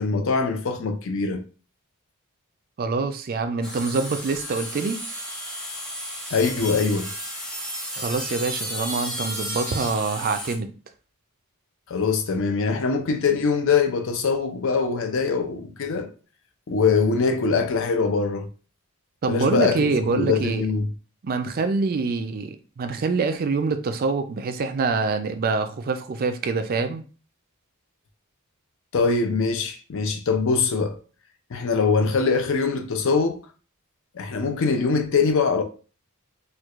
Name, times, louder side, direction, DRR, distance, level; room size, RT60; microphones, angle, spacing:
voice 1, 0.0-1.4 6.3-7.1 11.9-16.1 16.7-18.5 19.3-20.9 28.9-31.0 31.5-33.4 34.1-35.6, left 4 dB, 60° left, 0.5 m, -23 dB
voice 2, 2.8-5.0 7.9-10.7 19.2-20.6 21.2-27.0, right 4 dB, 40° right, 0.4 m, -25 dB
sound 1, 3.6-10.5, equal, 5° left, 0.6 m, -33 dB
4.4 x 2.3 x 2.4 m
head